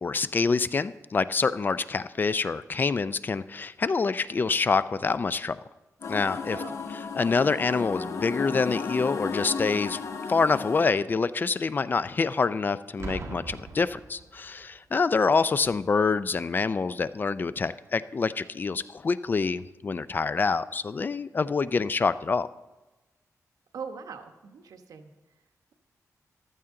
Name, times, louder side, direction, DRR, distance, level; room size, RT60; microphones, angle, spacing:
voice 1, 0.0-5.6 6.1-6.6 6.9-10.0 10.3-22.5, left 4 dB, 35° left, 15 dB, 0.3 m, -26 dB
sound 1, 6.0-10.9, left 5 dB, 55° left, 0.8 m, -34 dB
Boom, 13.0-14.8 15.6-15.9, right 3 dB, 50° right, 1.4 m, -40 dB
voice 2, 23.7-25.1, right 6 dB, 85° right, 6 dB, 1.1 m, -41 dB
14.5 x 12.5 x 3.8 m, 1.1 s
wide cardioid pair, 150°, 6 cm